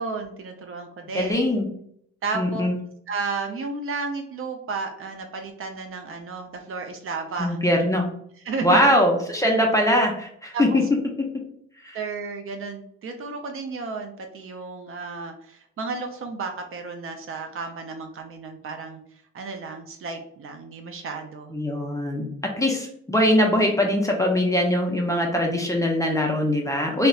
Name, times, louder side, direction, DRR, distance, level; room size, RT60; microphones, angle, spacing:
voice 1, 0.0-1.4 2.2-2.6 3.1-7.6 8.5-8.8 10.5-10.8 11.9-19.0 19.3-21.6, right 4 dB, 45° right, 4 dB, 0.4 m, -33 dB
voice 2, 1.1-1.7 2.3-2.7 7.4-8.1 8.6-10.8 11.8-12.0 21.5-22.3 22.6-27.1, left 1 dB, 10° left, 1 dB, 0.4 m, -21 dB
2.7 x 2.1 x 2.3 m, 0.69 s
cardioid pair, 90°, 30 cm